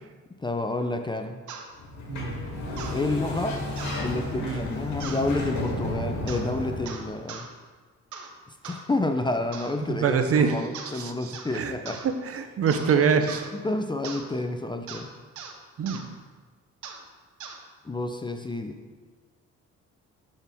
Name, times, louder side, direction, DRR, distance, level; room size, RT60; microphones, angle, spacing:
voice 1, 0.4-1.4 2.9-3.6 4.0-7.5 8.6-12.1 12.9-13.1 13.5-15.1 17.8-18.8, left 2 dB, 15° left, 6 dB, 0.5 m, -29 dB
sound 1, 1.5-1.7 2.8-3.0 3.8-4.0 5.0-5.3 6.3-6.5 6.9-7.5 8.1-8.3 8.6-8.8 9.5-9.8 10.7-11.0 11.3-11.6 11.9-12.1 12.7-12.9 13.3-13.5 14.0-14.3 14.9-15.1 15.4-15.5 15.9-16.0 16.8-17.0 17.4-17.6, right 6 dB, 75° right, 0.9 m, -40 dB
Sliding door, 1.8-7.1, left 1 dB, 70° left, 1.9 m, -32 dB
voice 2, 9.9-10.6 10.9-11.7 12.2-13.4 15.8-16.0, right 6 dB, 50° right, 7 dB, 0.7 m, -25 dB
11.5 x 4.2 x 3.5 m, 1.4 s
cardioid pair, 90°, 30 cm